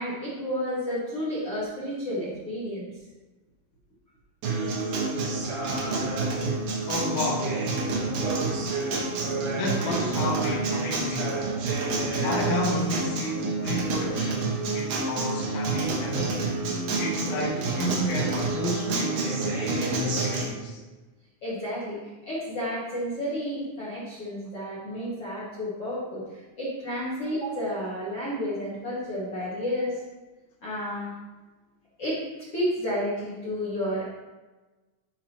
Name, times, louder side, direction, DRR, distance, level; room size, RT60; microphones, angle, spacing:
voice 1, 0.0-2.9 21.4-30.0 30.6-31.1 32.0-32.2 32.5-34.1, equal, 55° left, -7 dB, 1.6 m, -31 dB
Acoustic guitar, 4.4-20.4, right 3 dB, 80° right, 1.8 m, -28 dB
voice 2, 6.9-7.6 9.5-11.4 12.2-16.5 17.0-20.8, left 1 dB, 75° left, -3 dB, 3.9 m, -31 dB
12.0 x 5.2 x 3.0 m, 1.2 s
omnidirectional pair, 5.7 m